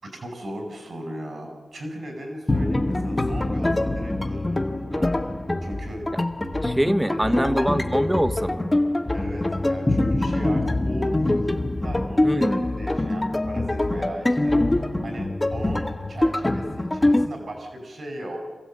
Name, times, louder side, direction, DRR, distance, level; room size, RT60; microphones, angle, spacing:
voice 1, 0.0-5.3 5.6-6.0 7.1-7.7 9.1-11.5 11.8-14.8 15.0-18.4, right 1 dB, 65° right, 4 dB, 5.3 m, -37 dB
sound 1, 2.5-17.3, left 1 dB, 20° left, 1.2 m, -24 dB
voice 2, 6.6-8.7 12.2-12.7, equal, 10° right, 10 dB, 1.1 m, -24 dB
26.5 x 15.5 x 8.6 m, 1.4 s
wide cardioid pair, 75°, 0 cm